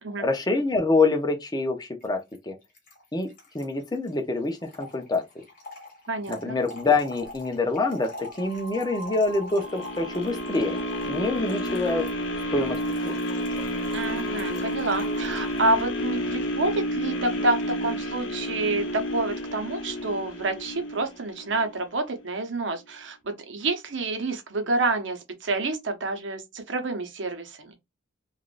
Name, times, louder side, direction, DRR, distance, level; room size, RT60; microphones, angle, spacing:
voice 1, 0.2-2.5 3.1-5.2 6.3-10.8 11.1-12.1 12.5-13.2, left 3 dB, 20° left, 0.6 m, -26 dB
Trickle dribble / Fill (with liquid), 2.0-2.1 2.3-2.4 2.6-15.7, left 2 dB, 45° left, 1.3 m, -45 dB
voice 2, 6.1-6.6 13.9-27.7, right 2 dB, 70° right, 0.8 m, -28 dB
sound 1, 7.3-7.4 8.2-15.9, right 1 dB, 35° right, 0.8 m, -44 dB
sound 2, 9.6-21.7 22.2-22.3, equal, 80° left, 0.7 m, -30 dB
3.4 x 2.4 x 2.4 m
head